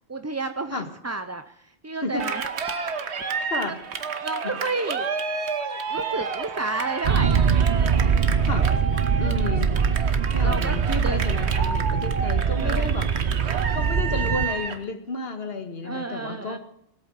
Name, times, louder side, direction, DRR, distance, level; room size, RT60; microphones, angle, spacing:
voice 1, 0.1-2.4 3.7-3.8 4.2-5.2 5.9-7.4 7.8-8.2 10.4-11.2 12.6-12.9 15.8-16.6, right 3 dB, 20° right, 8 dB, 0.4 m, -31 dB
sound 1, 2.2-4.9 5.9-7.7, right 3 dB, 5° left, 1.2 m, -42 dB
Cheering, 2.2-14.8, right 5 dB, 80° right, 1.4 m, -31 dB
sound 2, 7.0-14.5, right 6 dB, 50° right, 0.8 m, -22 dB
voice 2, 9.2-9.7 10.3-13.1 13.7-16.6, left 3 dB, 65° left, 7 dB, 1.9 m, -31 dB
19.0 x 8.4 x 6.5 m, 0.75 s
omnidirectional pair, 1.1 m